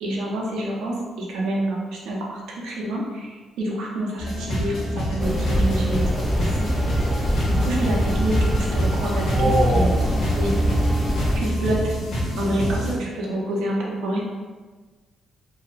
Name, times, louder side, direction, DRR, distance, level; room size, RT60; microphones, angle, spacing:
voice 1, 0.0-6.1 6.4-7.1 7.5-9.9 10.3-10.5 11.3-11.8 12.4-14.2, right 1 dB, 85° right, -3 dB, 0.7 m, -27 dB
sound 1, 4.2-13.0, equal, 80° left, 0.9 m, -27 dB
Anciferovo countyside at night, 5.2-11.4, equal, 5° left, 0.5 m, -24 dB
voice 2, 9.3-10.1, right 1 dB, 55° right, -7 dB, 0.6 m, -21 dB
2.7 x 2.3 x 3.2 m, 1.4 s
cardioid pair, 90°, 0 cm